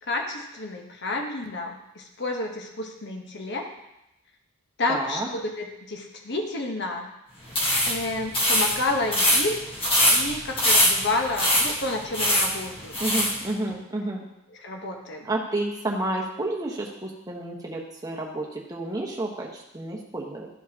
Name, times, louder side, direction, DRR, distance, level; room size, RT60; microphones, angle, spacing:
voice 1, 0.0-3.7 4.8-7.1 7.9-9.6 10.1-13.3 13.7-13.8 14.6-15.3, left 2 dB, 50° left, 2 dB, 1.0 m, -30 dB
voice 2, 4.9-5.3 13.0-14.2 15.2-20.5, right 2 dB, 15° right, -2 dB, 1.0 m, -30 dB
sound 1, 7.5-13.4, left 1 dB, 25° left, 1.3 m, -23 dB
13.0 x 4.6 x 2.8 m, 0.89 s
head